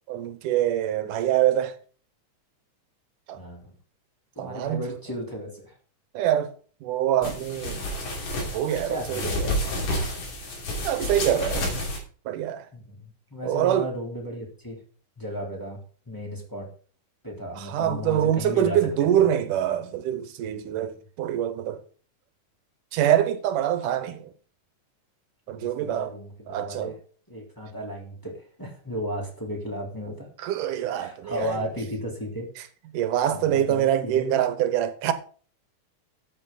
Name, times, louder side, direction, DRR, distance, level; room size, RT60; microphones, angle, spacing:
voice 1, 0.1-1.7 3.3-3.4 4.4-4.8 6.1-6.5 6.8-7.9 8.5-9.5 10.8-11.7 12.3-12.7 13.4-13.9 17.6-21.8 22.9-24.3 25.5-26.2 26.5-26.9 30.4-31.6 32.9-35.1, right 11 dB, 80° right, 2.6 m, -25 dB
voice 2, 3.3-3.7 4.3-5.7 8.7-9.6 12.7-14.8 15.2-15.8 16.1-16.7 17.2-19.2 20.7-20.9 25.5-27.0 27.3-30.3 30.9-32.5 33.3-34.4, equal, 5° left, 3.1 m, -35 dB
sound 1, 7.2-12.0, left 1 dB, 85° left, 4.5 m, -30 dB
13.0 x 8.4 x 3.9 m
omnidirectional pair, 3.7 m